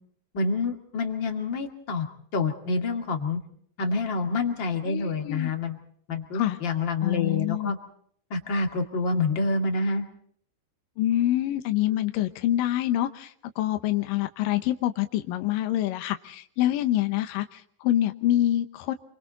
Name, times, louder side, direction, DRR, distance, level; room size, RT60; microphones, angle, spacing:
voice 1, 0.3-2.1 2.3-3.4 3.8-5.8 6.1-7.8 8.3-10.1, left 3 dB, 40° left, 4 dB, 1.8 m, -27 dB
voice 2, 4.9-5.5 6.3-6.6 7.0-7.7 11.0-18.9, left 13 dB, 85° left, 8 dB, 1.9 m, -26 dB
28.5 x 24.0 x 4.1 m, 0.63 s
omnidirectional pair, 5.3 m